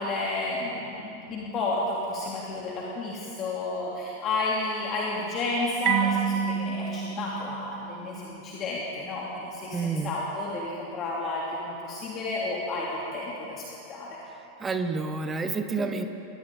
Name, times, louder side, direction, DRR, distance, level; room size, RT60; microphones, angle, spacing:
voice 1, 0.0-14.2, left 2 dB, 30° left, -4 dB, 3.1 m, -31 dB
Marimba xylophone, 5.9-8.5, right 9 dB, 40° right, 0.9 m, -29 dB
voice 2, 9.7-10.1 14.3-16.1, right 4 dB, 15° right, 8 dB, 1.3 m, -29 dB
29.0 x 23.5 x 3.9 m, 2.9 s
figure-of-eight pair, 90°, 0 cm